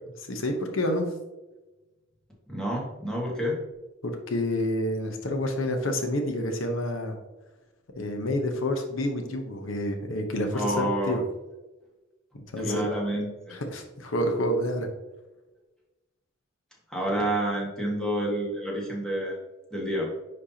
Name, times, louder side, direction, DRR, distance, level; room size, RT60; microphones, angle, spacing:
voice 1, 0.3-1.1 4.0-7.2 7.9-11.2 12.3-12.8 13.5-14.9, left 1 dB, 70° left, 4 dB, 0.9 m, -28 dB
voice 2, 2.5-3.6 10.5-11.2 12.6-13.6 16.9-19.4 19.7-20.1, equal, 5° left, -4 dB, 1.6 m, -29 dB
9.9 x 4.4 x 2.8 m, 1.1 s
head